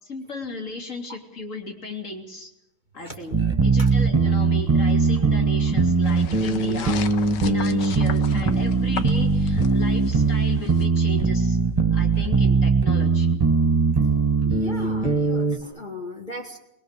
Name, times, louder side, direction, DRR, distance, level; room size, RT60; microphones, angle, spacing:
voice 1, 0.0-2.5 2.9-11.6 11.9-13.3, left 2 dB, 45° left, 2 dB, 3.5 m, -36 dB
voice 2, 3.0-3.4 3.8-3.9 14.5-16.6, left 1 dB, 25° left, 3 dB, 2.4 m, -37 dB
sound 1, 3.3-15.6, right 4 dB, 25° right, 1.4 m, -20 dB
sound 2, 6.0-10.9, left 8 dB, 85° left, 1.7 m, -37 dB
22.0 x 22.0 x 6.7 m, 0.87 s
omnidirectional pair, 1.8 m